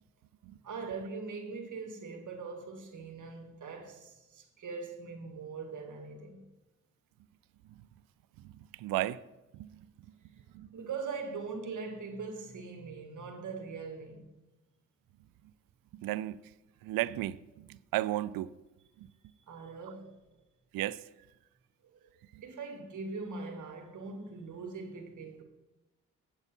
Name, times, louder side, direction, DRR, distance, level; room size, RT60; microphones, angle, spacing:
voice 1, 0.6-6.4 10.3-10.4 10.7-14.3 19.5-20.2 21.8-22.1 22.4-25.4, right 4 dB, 60° right, 2.0 m, -41 dB
voice 2, 8.8-9.2 9.5-9.7 10.5-10.7 15.9-16.4 16.8-18.5 19.0-19.1 20.7-21.0 22.3-22.4, right 15 dB, 75° right, 0.5 m, -34 dB
8.1 x 8.0 x 4.4 m
supercardioid pair, 50°, 35 cm